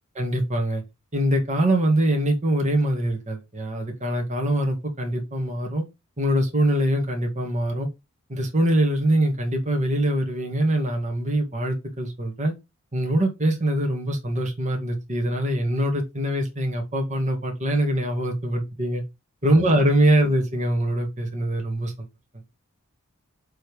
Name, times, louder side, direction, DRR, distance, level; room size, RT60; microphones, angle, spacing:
voice 1, 0.2-0.8 1.1-5.8 6.2-7.9 8.3-12.5 12.9-19.0 19.4-21.9, right 1 dB, 35° right, 2.2 m, -23 dB
7.5 x 3.6 x 6.4 m
head